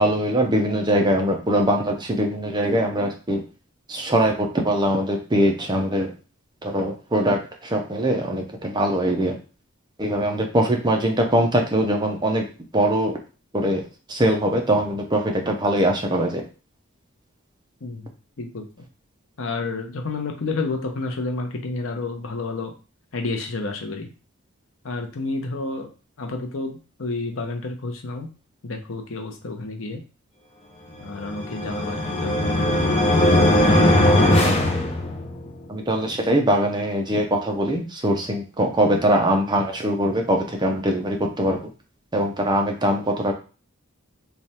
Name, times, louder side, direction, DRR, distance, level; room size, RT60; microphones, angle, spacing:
voice 1, 0.0-3.4 3.9-6.1 6.6-9.3 10.0-12.4 12.7-13.2 13.5-13.8 14.1-16.4 35.7-41.6 42.1-43.3, right 1 dB, 20° right, 2 dB, 0.6 m, -22 dB
voice 2, 19.4-22.7 23.1-24.1 24.8-25.9 26.2-28.3 28.6-30.0 31.0-32.7 33.2-33.3, left 3 dB, 65° left, 4 dB, 0.7 m, -30 dB
sound 1, 31.2-35.5, left 1 dB, 30° left, 0.6 m, -19 dB
3.2 x 2.3 x 4.2 m, 0.34 s
head